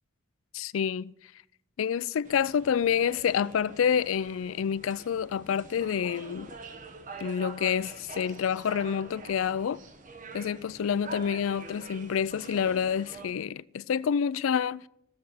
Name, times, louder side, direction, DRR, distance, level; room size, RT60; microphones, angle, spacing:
voice 1, 0.5-1.1 1.8-6.5 7.2-9.8 10.3-14.8, left 7 dB, 80° left, 0.4 m, -28 dB
sound 1, 2.2-13.3, right 3 dB, 40° right, 1.0 m, -45 dB
16.0 x 7.1 x 6.4 m
head